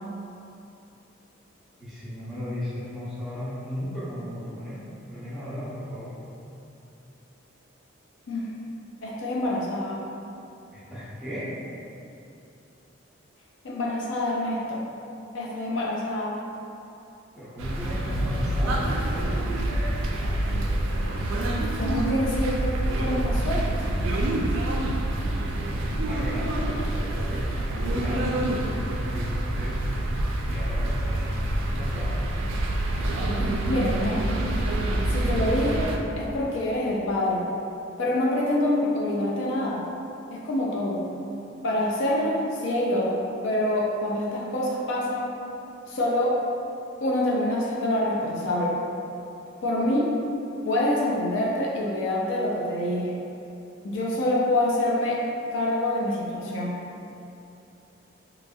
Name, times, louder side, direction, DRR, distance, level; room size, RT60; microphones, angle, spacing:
voice 1, 1.8-4.8 5.1-6.2 10.7-11.5 17.3-19.6 25.7-26.5 26.9-29.8 30.5-32.1, left 1 dB, ahead, -14 dB, 0.8 m, -35 dB
voice 2, 9.0-10.0 13.6-14.8 15.3-16.4 21.8-23.7 33.4-34.4 35.1-35.9 36.2-37.4 38.0-39.8 40.3-41.0 41.6-43.2 43.4-45.3 45.9-46.4 47.0-48.8 49.6-50.1 50.6-53.2 53.8-55.2 55.5-56.7, left 1 dB, 70° left, -3 dB, 0.4 m, -26 dB
sound 1, 17.6-36.0, right 1 dB, 80° right, 0.3 m, -27 dB
2.8 x 2.7 x 2.3 m, 2.7 s
head